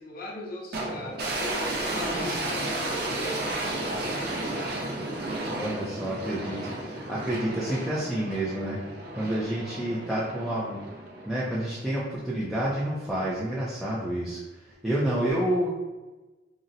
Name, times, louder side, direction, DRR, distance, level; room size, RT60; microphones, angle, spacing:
voice 1, 0.0-5.0, left 2 dB, 55° left, 0 dB, 0.6 m, -39 dB
sound 1, 0.7-11.9, right 2 dB, 60° right, 0.5 m, -33 dB
voice 2, 5.5-8.8 9.2-10.8 11.3-15.7, right 1 dB, ahead, -9 dB, 0.4 m, -29 dB
3.9 x 2.0 x 2.5 m, 1.2 s
head